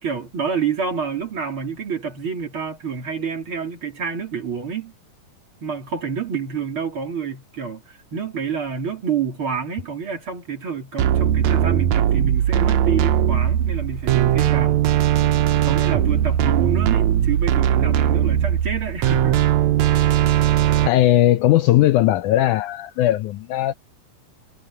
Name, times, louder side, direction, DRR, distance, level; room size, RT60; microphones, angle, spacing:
voice 1, 0.0-4.9 5.6-14.8 15.6-19.4, right 6 dB, 40° right, 3.8 m, -28 dB
sound 1, 11.0-20.9, right 11 dB, 70° right, 1.9 m, -19 dB
voice 2, 20.8-23.7, left 14 dB, 75° left, 1.9 m, -18 dB
omnidirectional pair, 3.9 m